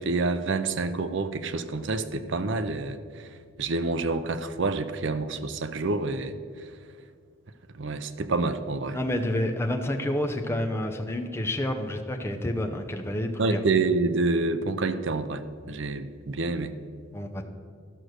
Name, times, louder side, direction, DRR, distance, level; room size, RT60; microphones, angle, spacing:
voice 1, 0.0-3.3 3.6-6.7 7.7-9.0 13.4-16.8, right 3 dB, 60° right, 11 dB, 0.6 m, -28 dB
voice 2, 8.9-13.6 17.1-17.4, left 1 dB, 10° left, 4 dB, 0.6 m, -29 dB
12.5 x 6.2 x 6.5 m, 2.2 s
head